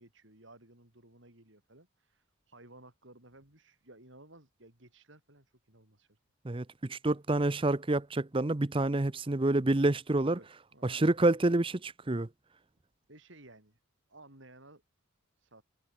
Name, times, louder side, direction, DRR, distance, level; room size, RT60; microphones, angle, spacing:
voice 1, 0.0-6.2 10.2-11.2 13.1-13.8 14.1-14.8 15.4-15.6, right 2 dB, 60° right, 4.3 m, -56 dB
voice 2, 6.4-10.4 10.8-12.3, right 2 dB, 25° right, 0.6 m, -28 dB
head